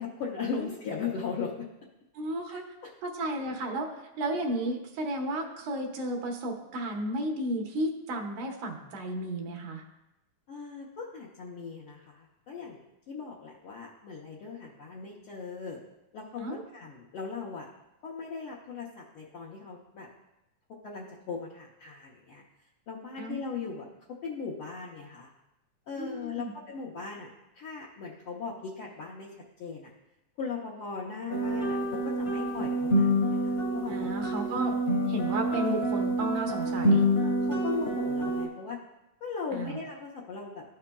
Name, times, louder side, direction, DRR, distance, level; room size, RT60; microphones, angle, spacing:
voice 1, 0.0-1.7 2.5-2.9 10.5-12.8 13.1-15.8 16.1-17.7 18.0-20.1 20.8-22.4 22.9-23.9 24.2-25.3 25.9-27.3 27.5-29.9 30.4-34.1 36.6-38.8 39.2-40.6, left 5 dB, 85° left, -4 dB, 1.1 m, -38 dB
voice 2, 2.2-2.6 3.0-3.9 4.2-9.8 16.4-16.6 23.2-23.4 26.0-26.5 33.9-34.8 35.1-37.1 39.5-39.8, right 1 dB, 90° right, 2 dB, 2.5 m, -33 dB
sound 1, 31.3-38.5, equal, 45° left, 0.8 m, -27 dB
13.0 x 5.7 x 2.2 m, 0.93 s
omnidirectional pair, 3.5 m